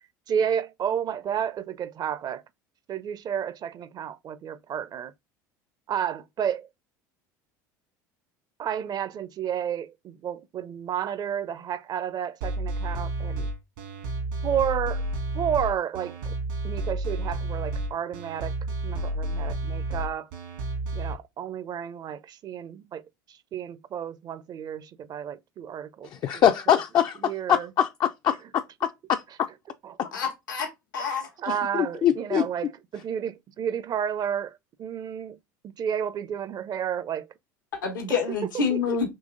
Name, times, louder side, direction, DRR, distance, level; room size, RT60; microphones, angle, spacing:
voice 1, 0.3-2.4 2.9-5.1 5.9-6.7 8.6-13.5 14.4-15.0 15.3-16.4 16.6-18.6 18.8-20.3 20.9-23.0 23.3-26.8 27.2-27.7 29.8-30.0 31.0-35.4 35.6-37.3 38.1-38.2 38.7-38.8, right 8 dB, 40° right, 0.5 m, -31 dB
sound 1, 12.4-21.1, right 2 dB, 80° right, 1.6 m, -31 dB
voice 2, 26.2-27.2 27.5-28.4 28.8-29.5 31.7-32.4, left 9 dB, 45° left, 0.4 m, -23 dB
voice 3, 30.1-30.7 30.9-31.3 37.7-39.1, left 5 dB, 85° left, 1.1 m, -27 dB
3.8 x 2.9 x 3.7 m
hypercardioid pair, 75°, 10 cm